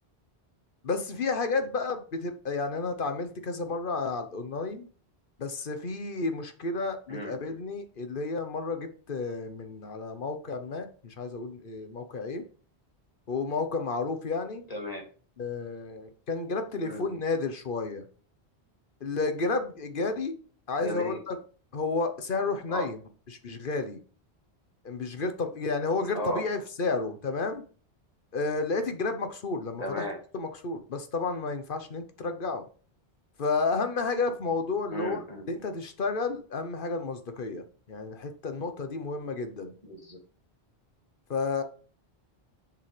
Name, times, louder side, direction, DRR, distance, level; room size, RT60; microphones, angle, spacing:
voice 1, 0.8-4.9 5.4-12.4 13.3-14.7 15.4-18.1 19.0-20.4 20.7-21.4 21.7-23.0 23.3-24.0 24.8-27.6 28.3-30.1 30.3-32.6 33.4-35.2 35.5-39.7 41.3-41.6, left 3 dB, 55° left, 1.1 m, -31 dB
voice 2, 14.7-15.0 16.8-17.0 20.8-21.2 22.7-22.8 26.1-26.4 29.8-30.1 34.9-35.4 39.8-40.2, left 1 dB, 35° left, 2.3 m, -34 dB
7.0 x 5.5 x 3.3 m
omnidirectional pair, 1.1 m